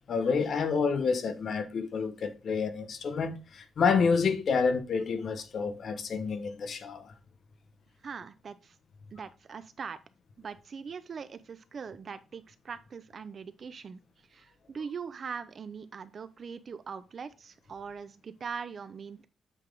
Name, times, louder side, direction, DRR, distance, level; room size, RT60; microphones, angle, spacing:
voice 1, 0.1-7.1, left 5 dB, 55° left, 1.0 m, -28 dB
voice 2, 8.0-8.8 9.1-10.0 10.4-14.0 14.3-19.3, right 6 dB, 45° right, 0.6 m, -41 dB
8.3 x 3.5 x 3.8 m
cardioid pair, 110°, 0 cm